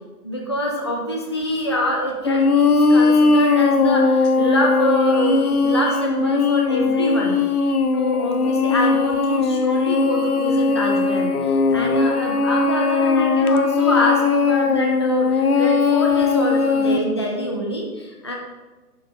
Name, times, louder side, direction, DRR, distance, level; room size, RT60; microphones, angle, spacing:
voice 1, 0.2-7.4 7.9-18.3, equal, 20° left, 0 dB, 0.4 m, -25 dB
sound 1, 2.2-17.0, left 4 dB, 70° left, 0.9 m, -19 dB
11.5 x 7.4 x 3.4 m, 1.2 s
figure-of-eight pair, 135°, 46 cm